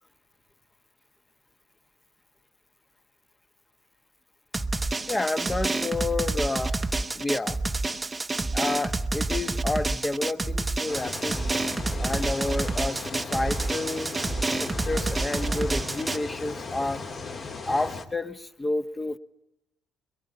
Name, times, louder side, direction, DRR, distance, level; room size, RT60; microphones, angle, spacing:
Drum, 4.5-16.2, right 2 dB, 15° right, 0.9 m, -28 dB
voice 1, 5.1-6.8 7.1-7.6 8.5-11.7 12.0-14.1 14.4-17.0 17.7-19.2, left 2 dB, 15° left, 11 dB, 1.2 m, -30 dB
sound 1, 10.9-18.0, left 4 dB, 35° left, 2.4 m, -37 dB
23.0 x 22.5 x 9.3 m, 0.87 s
cardioid pair, 140°, 0 cm